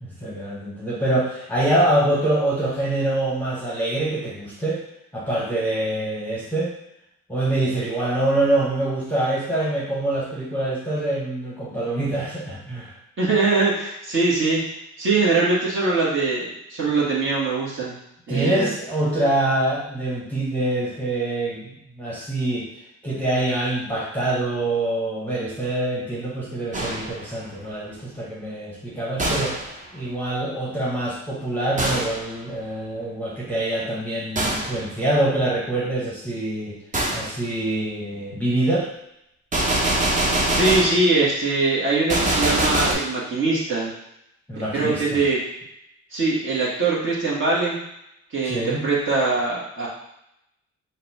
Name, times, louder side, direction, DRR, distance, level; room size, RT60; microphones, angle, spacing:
voice 1, 0.0-4.8 5.1-6.7 7.3-12.9 18.3-21.7 22.0-22.7 23.0-36.8 37.1-38.9 44.5-45.2 48.4-48.9, right 1 dB, 5° left, -6 dB, 1.0 m, -25 dB
voice 2, 13.2-14.6 15.0-18.0 18.3-18.7 40.3-43.9 44.6-45.4 46.1-47.8 48.3-49.9, right 3 dB, 45° right, -6 dB, 1.3 m, -22 dB
Gunshot gunfire, 26.7-27.2 29.2-29.7 31.8-32.3 34.4-34.8 36.9-37.3 39.5-41.1 42.1-42.9, right 1 dB, 25° right, 0.9 m, -23 dB
4.2 x 2.2 x 4.1 m, 0.81 s
cardioid pair, 90°, 30 cm